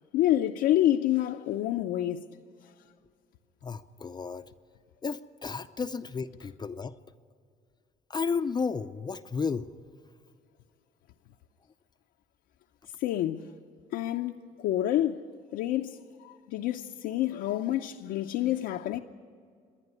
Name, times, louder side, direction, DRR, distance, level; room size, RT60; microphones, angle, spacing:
voice 1, 0.1-2.3 13.0-13.5 13.9-19.0, left 13 dB, 80° left, 0.6 m, -28 dB
voice 2, 3.6-4.5 5.0-6.9 8.1-9.7, left 5 dB, 25° left, 0.5 m, -33 dB
26.0 x 10.5 x 9.5 m
cardioid pair, 110°, 17 cm